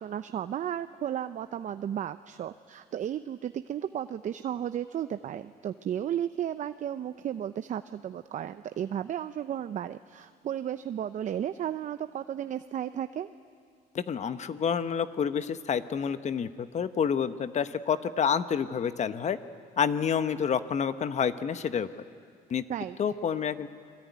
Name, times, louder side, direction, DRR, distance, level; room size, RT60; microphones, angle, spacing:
voice 1, 0.0-13.3 22.7-23.0, right 10 dB, 45° right, 11 dB, 0.7 m, -34 dB
voice 2, 13.9-16.5 16.7-19.4 19.8-21.9 22.5-22.6 23.0-23.7, left 7 dB, 45° left, 12 dB, 1.2 m, -28 dB
29.0 x 22.0 x 9.5 m, 2.2 s
cardioid pair, 110°, 17 cm